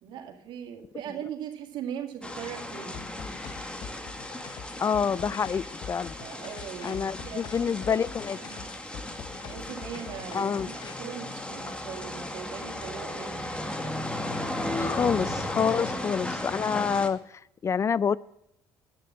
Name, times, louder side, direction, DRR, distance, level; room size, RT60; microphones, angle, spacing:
voice 1, 0.0-3.0 6.2-8.0 8.4-8.7 9.4-13.5 15.6-15.8, right 8 dB, 70° right, 3 dB, 2.1 m, -40 dB
sound 1, 2.2-17.1, left 1 dB, 10° left, 1.6 m, -35 dB
sound 2, 2.9-10.9, left 6 dB, 55° left, 0.9 m, -44 dB
voice 2, 4.8-6.1 6.8-8.4 10.3-10.7 14.7-18.2, left 6 dB, 35° left, 21 dB, 0.4 m, -27 dB
9.9 x 6.6 x 7.4 m, 0.78 s
supercardioid pair, 75°, 9 cm